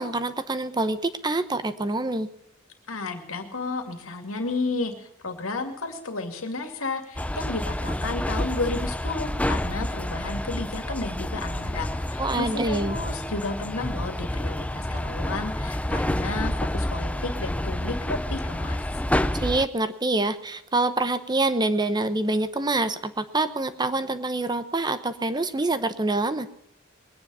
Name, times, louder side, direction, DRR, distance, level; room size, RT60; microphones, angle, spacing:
voice 1, 0.0-2.3 12.2-13.0 19.4-26.5, right 2 dB, 20° right, 11 dB, 0.9 m, -26 dB
voice 2, 2.9-18.8, left 3 dB, 85° left, 5 dB, 2.4 m, -32 dB
sound 1, 7.2-19.7, left 1 dB, 5° left, 0.5 m, -29 dB
21.5 x 9.8 x 5.5 m, 0.80 s
head